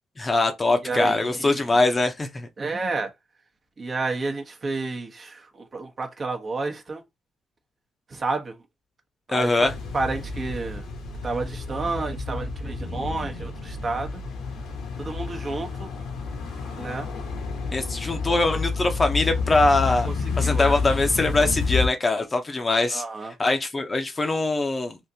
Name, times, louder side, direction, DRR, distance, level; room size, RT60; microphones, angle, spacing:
voice 1, 0.2-2.5 9.3-9.7 17.7-20.1 20.4-23.0 23.4-25.0, left 2 dB, 25° left, 0.6 m, -22 dB
voice 2, 0.7-1.6 2.6-3.1 3.8-7.0 8.1-8.6 9.3-10.8 11.2-14.2 15.0-15.9 16.7-17.1 20.4-20.8 22.9-23.3, right 3 dB, 40° right, 0.9 m, -30 dB
sound 1, 9.6-21.9, left 4 dB, 85° left, 1.0 m, -30 dB
3.5 x 2.5 x 2.7 m
cardioid pair, 90°, 0 cm